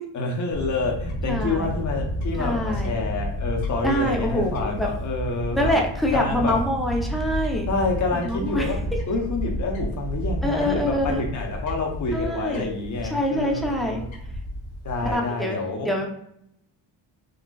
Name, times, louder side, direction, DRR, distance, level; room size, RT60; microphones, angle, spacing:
voice 1, 0.1-5.7 6.1-6.6 7.7-8.8 9.1-14.1 14.8-15.9, left 3 dB, 40° left, 1 dB, 0.8 m, -28 dB
Fowl / Bird, 0.5-15.1, equal, 85° left, 0.9 m, -31 dB
voice 2, 1.3-1.7 2.4-2.9 3.8-4.9 5.5-7.7 8.3-8.7 10.4-11.2 12.1-12.7 13.1-14.0 15.0-15.6 15.8-16.1, equal, ahead, 0 dB, 0.6 m, -25 dB
3.9 x 2.4 x 2.3 m, 0.73 s
cardioid pair, 85°, 46 cm